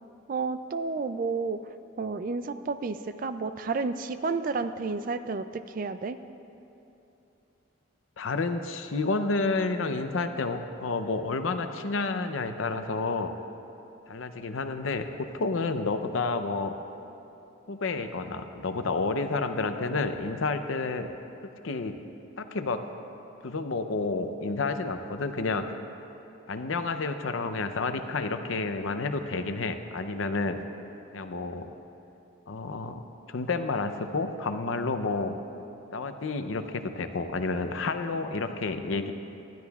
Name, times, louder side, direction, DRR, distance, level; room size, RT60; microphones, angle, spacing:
voice 1, 0.3-1.6 2.0-6.2, right 4 dB, 40° right, 11 dB, 0.3 m, -31 dB
voice 2, 8.2-13.3 14.1-16.7 17.7-21.1 21.6-22.0 22.4-22.8 23.4-25.7 26.5-30.6 31.1-31.7 32.5-35.4 35.9-39.1, left 3 dB, 75° left, 8 dB, 0.6 m, -30 dB
19.5 x 12.0 x 2.4 m, 2.9 s
head